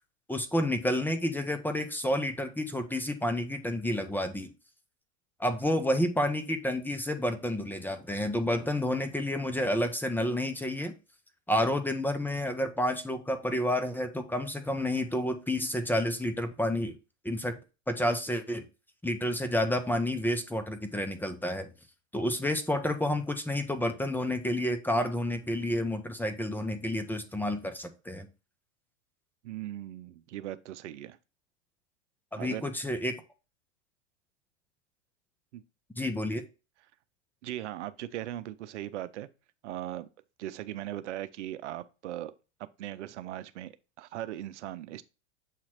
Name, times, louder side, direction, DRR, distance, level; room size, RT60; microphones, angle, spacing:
voice 1, 0.3-4.5 5.4-10.9 11.5-17.0 17.2-17.6 17.9-18.6 19.0-21.7 22.1-28.3 32.3-33.2 36.0-36.4, left 1 dB, 5° left, 0.7 m, -30 dB
voice 2, 29.4-31.2 32.4-32.7 35.5-35.6 37.4-39.3 39.6-40.1 40.4-42.3 42.6-45.0, right 13 dB, 80° right, 0.7 m, -39 dB
7.4 x 3.0 x 4.3 m
hypercardioid pair, 115°, 35 cm